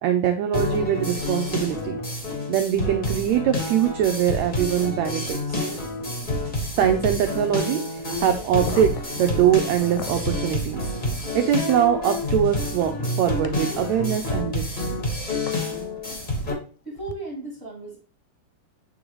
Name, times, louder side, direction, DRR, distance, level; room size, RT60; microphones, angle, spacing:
voice 1, 0.0-2.0 2.5-5.6 6.8-10.8 11.3-15.0, right 10 dB, 90° right, 6 dB, 1.5 m, -23 dB
sound 1, 0.5-16.5, left 1 dB, 55° left, 0.5 m, -28 dB
sound 2, 8.6-10.3 11.7-11.8 13.4-13.5 15.5-15.6 17.0-17.1, left 6 dB, 80° left, 1.7 m, -34 dB
voice 2, 16.8-18.0, right 3 dB, 25° right, -3 dB, 1.5 m, -35 dB
8.5 x 3.9 x 3.0 m, 0.39 s
omnidirectional pair, 3.8 m